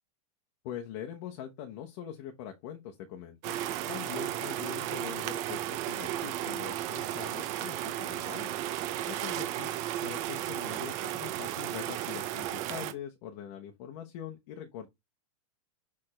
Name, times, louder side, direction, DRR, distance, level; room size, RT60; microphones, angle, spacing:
voice 1, 0.6-3.5 3.9-8.5 9.1-9.7 10.0-14.9, left 10 dB, 45° left, 1.1 m, -43 dB
sound 1, 3.4-12.9, right 12 dB, 35° right, 0.8 m, -34 dB
6.8 x 3.7 x 4.3 m
supercardioid pair, 150°, 19 cm